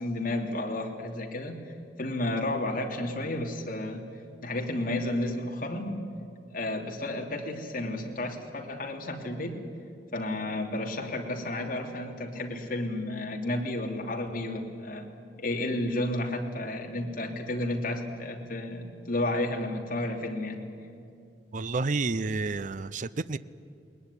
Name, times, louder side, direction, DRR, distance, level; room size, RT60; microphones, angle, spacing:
voice 1, 0.0-1.6 2.0-4.1 4.4-6.0 6.5-9.6 10.1-15.1 15.4-20.6, left 1 dB, 55° left, 2 dB, 2.9 m, -32 dB
voice 2, 21.5-23.4, right 3 dB, 45° right, 15 dB, 0.6 m, -30 dB
21.0 x 20.5 x 9.8 m, 2.5 s
head